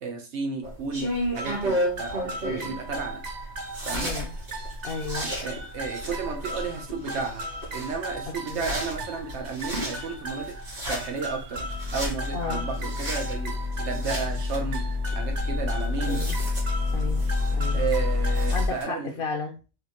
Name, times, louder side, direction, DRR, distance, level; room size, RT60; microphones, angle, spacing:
voice 1, 0.0-1.1 1.3-3.2 3.8-4.1 5.4-7.5 7.7-10.5 10.9-11.7 11.9-13.5 13.8-14.8 15.1-16.2 17.7-19.1, right 5 dB, 85° right, 3 dB, 1.0 m, -32 dB
sound 1, 0.6-18.8, equal, 70° right, 2.0 m, -34 dB
sound 2, 1.4-18.7, left 2 dB, 45° right, 0.7 m, -31 dB
voice 2, 3.9-4.3 4.8-5.3 8.5-8.7 12.3-12.7 16.0-16.4 16.9-17.9 18.5-19.6, left 4 dB, 60° left, 2 dB, 0.8 m, -33 dB
4.7 x 2.1 x 3.0 m, 0.32 s
omnidirectional pair, 1.1 m